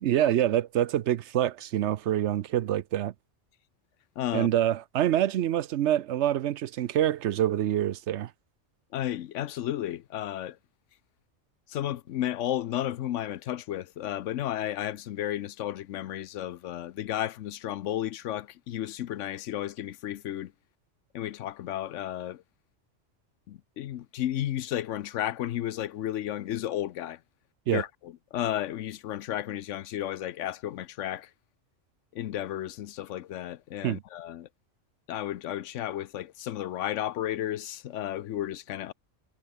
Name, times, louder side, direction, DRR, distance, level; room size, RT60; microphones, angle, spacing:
voice 1, 0.0-3.1 4.3-8.3 27.7-27.8 33.8-34.0, right 12 dB, 70° right, 0.9 m, -26 dB
voice 2, 4.2-4.5 8.9-10.6 11.7-20.5 21.1-22.4 23.5-27.2 27.7-31.3 32.1-34.5 35.1-38.9, left 12 dB, 80° left, 1.0 m, -33 dB
omnidirectional pair, 1.3 m